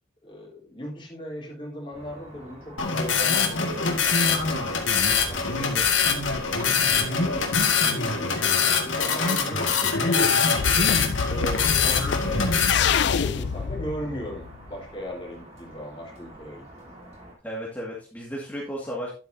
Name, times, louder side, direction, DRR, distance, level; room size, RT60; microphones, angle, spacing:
voice 1, 0.2-5.9 6.5-10.6 11.3-12.6 13.1-17.1, equal, 25° left, -3 dB, 3.6 m, -38 dB
sound 1, 1.9-17.3, right 1 dB, 35° right, 3.2 m, -45 dB
sound 2, 2.8-12.7, left 5 dB, 80° left, 1.9 m, -23 dB
voice 2, 7.8-8.2 17.4-19.1, equal, 10° left, -5 dB, 2.0 m, -34 dB
sound 3, 10.5-14.8, left 6 dB, 60° left, 0.4 m, -27 dB
11.5 x 8.1 x 2.7 m, 0.36 s
head